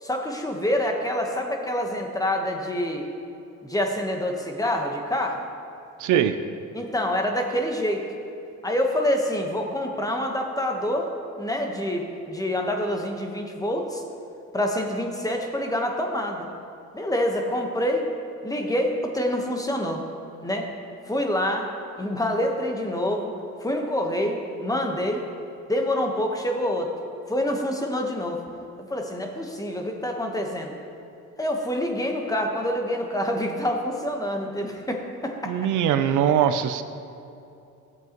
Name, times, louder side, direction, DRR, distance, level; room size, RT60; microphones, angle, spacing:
voice 1, 0.0-3.1 3.6-5.4 6.7-8.0 8.6-11.1 11.4-14.0 14.5-16.5 16.9-18.0 18.4-20.0 20.4-20.7 21.1-21.7 22.0-23.3 23.6-25.2 25.7-26.9 27.3-28.4 28.9-30.7 31.4-35.7, left 1 dB, 10° left, 2 dB, 1.2 m, -26 dB
voice 2, 6.0-6.4 35.5-36.8, right 9 dB, 80° right, 10 dB, 0.6 m, -21 dB
14.5 x 7.9 x 3.0 m, 2.7 s
cardioid pair, 90°, 30 cm